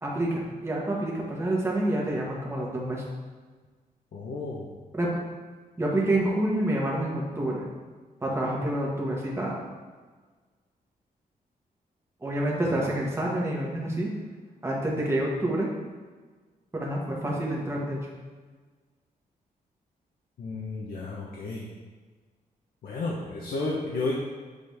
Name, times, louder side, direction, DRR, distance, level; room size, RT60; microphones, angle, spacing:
voice 1, 0.0-3.0 4.9-5.2 5.8-7.6 8.2-9.5 12.2-14.1 14.6-15.7 16.7-18.0, right 1 dB, 15° right, -3 dB, 1.3 m, -28 dB
voice 2, 4.1-4.7 20.4-21.7 22.8-24.2, left 3 dB, 75° left, -3 dB, 0.9 m, -32 dB
8.2 x 4.0 x 3.5 m, 1.4 s
wide cardioid pair, 120°, 15 cm